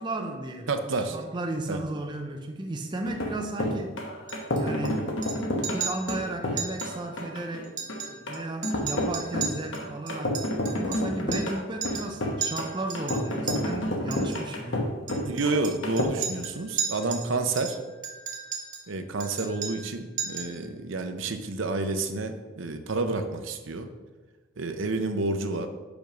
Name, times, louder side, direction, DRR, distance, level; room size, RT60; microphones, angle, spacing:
voice 1, 0.0-3.9 4.5-5.2 5.7-7.8 8.3-15.0, right 2 dB, 20° right, 3 dB, 0.4 m, -34 dB
voice 2, 0.7-1.2 1.7-1.8 15.2-17.8 18.9-23.9 24.6-25.7, right 3 dB, 70° right, 7 dB, 0.7 m, -29 dB
sound 1, 3.0-16.0, left 1 dB, 70° left, 1.0 m, -30 dB
Chink clink, 4.3-4.9 5.2-5.4 5.6-6.2 6.6-6.9 7.2-7.3 7.6-8.4 8.6-11.6 11.8-12.1 12.4-13.6 14.1-14.4 15.1-17.3 17.6-18.9 19.2-19.9 20.2-20.6, right 6 dB, 40° right, 0.9 m, -34 dB
5.2 x 5.2 x 6.0 m, 1.3 s
head